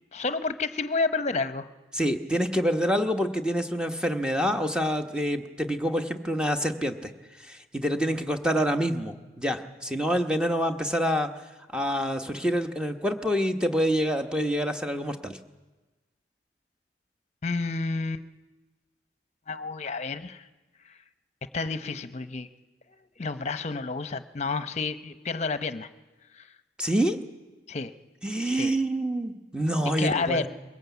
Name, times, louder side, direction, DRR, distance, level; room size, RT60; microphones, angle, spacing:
voice 1, 0.1-1.7 17.4-18.2 19.5-20.4 20.9-21.0 21.5-22.5 23.2-25.9 26.4-26.5 27.7-27.9 28.6-28.7 30.0-30.5, left 3 dB, 40° left, 12 dB, 0.8 m, -30 dB
voice 2, 1.9-7.1 7.4-11.3 11.7-15.4 26.8-27.2 28.2-30.5, equal, 5° right, 7 dB, 1.0 m, -27 dB
22.0 x 18.0 x 8.3 m, 1.2 s
head